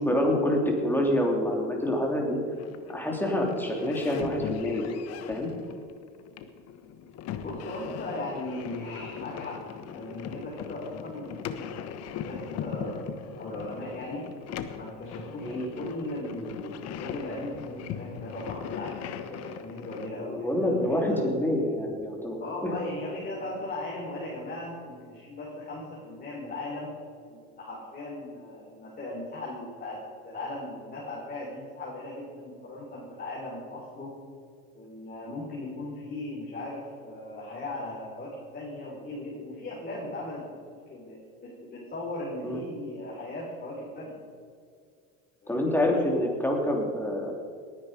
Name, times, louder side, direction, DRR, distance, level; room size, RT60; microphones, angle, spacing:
voice 1, 0.0-2.4 2.9-4.9 5.3-5.5 15.4-15.7 20.2-22.4 42.4-42.6 45.5-47.3, left 1 dB, 5° left, 0 dB, 3.2 m, -26 dB
sound 1, 2.5-20.1, left 8 dB, 55° left, 1.2 m, -40 dB
voice 2, 7.4-14.2 14.7-21.2 22.4-26.9 27.3-34.1 34.7-44.1 45.4-45.7, left 1 dB, 30° left, -6 dB, 4.6 m, -38 dB
19.0 x 9.7 x 5.2 m, 2.2 s
supercardioid pair, 100°, 31 cm